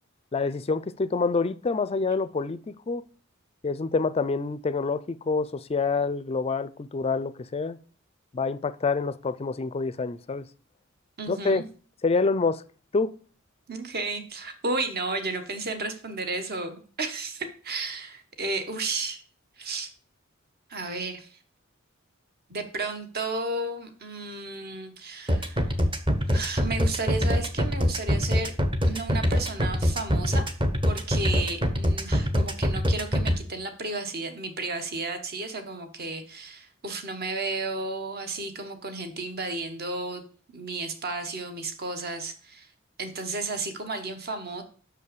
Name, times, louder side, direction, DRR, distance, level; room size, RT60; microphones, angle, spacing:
voice 1, 0.3-3.0 3.6-7.8 8.3-10.5 11.3-11.6 12.0-12.6 12.9-13.1, left 4 dB, 30° left, 0.4 m, -27 dB
voice 2, 11.2-11.6 13.7-19.2 19.6-19.9 20.7-21.4 22.5-25.7 26.3-28.5 28.8-30.5 30.9-40.2 40.5-42.7 43.0-44.6, right 3 dB, 50° right, 1.2 m, -33 dB
sound 1, 25.3-33.3, equal, 25° right, 0.9 m, -23 dB
6.2 x 5.5 x 6.7 m
head